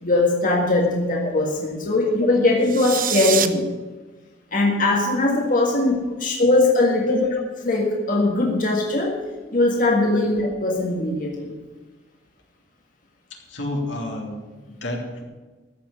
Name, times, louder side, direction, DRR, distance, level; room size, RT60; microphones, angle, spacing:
voice 1, 0.0-3.7 4.5-7.3 7.6-9.2 9.5-11.5, left 2 dB, 45° left, -1 dB, 1.7 m, -20 dB
sound 1, 2.6-3.5, right 10 dB, 50° right, 0.7 m, -25 dB
voice 2, 13.3-15.2, left 1 dB, 85° left, 0 dB, 2.9 m, -30 dB
14.5 x 6.3 x 8.5 m, 1.3 s
head